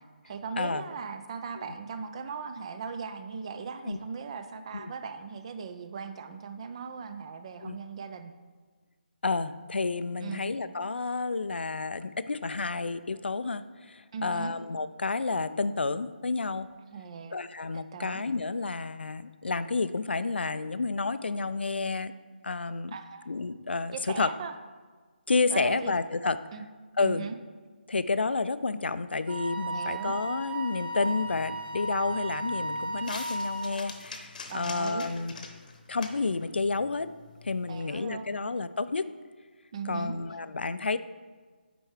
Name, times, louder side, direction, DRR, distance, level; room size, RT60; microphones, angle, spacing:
voice 1, 0.2-8.3 10.2-10.5 14.1-14.5 16.9-17.4 17.7-18.2 22.9-23.3 23.9-24.5 25.5-25.9 26.5-26.6 27.0-27.4 29.7-30.2 34.5-35.1 37.7-38.4 39.7-40.1, right 5 dB, 35° right, 9 dB, 0.5 m, -38 dB
voice 2, 9.2-16.7 17.3-22.1 22.4-22.9 23.3-24.3 25.3-26.4 27.0-27.3 27.9-35.4 35.9-37.1 37.4-39.0 39.9-41.0, left 3 dB, 75° left, 13 dB, 0.4 m, -30 dB
Wind instrument woodwind instrument, 29.3-33.7, right 2 dB, 70° right, 1.0 m, -35 dB
sound 1, 30.9-37.8, left 4 dB, 50° left, 0.9 m, -46 dB
9.0 x 4.5 x 3.3 m, 1.4 s
figure-of-eight pair, 155°, 6 cm